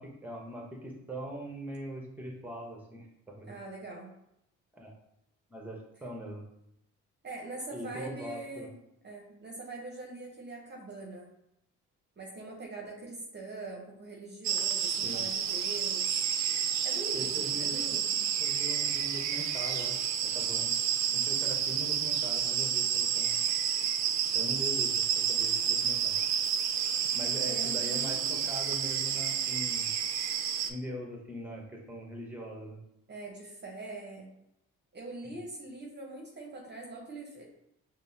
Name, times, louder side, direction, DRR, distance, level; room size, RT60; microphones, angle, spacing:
voice 1, 0.0-3.5 4.7-4.9 5.5-6.4 7.7-8.7 15.0-15.2 17.1-17.9 18.4-20.7 21.1-23.4 24.3-26.2 27.1-29.9 30.7-32.8 35.2-35.4, right 1 dB, 5° right, 0 dB, 0.9 m, -41 dB
voice 2, 3.5-4.1 7.2-8.8 9.0-11.3 12.2-16.2 16.8-18.3 27.5-28.5 33.1-34.3 34.9-37.4, right 2 dB, 35° right, -1 dB, 0.8 m, -43 dB
sound 1, 14.4-30.7, right 8 dB, 65° right, 0.4 m, -30 dB
5.3 x 2.1 x 2.7 m, 0.80 s
cardioid pair, 90°, 30 cm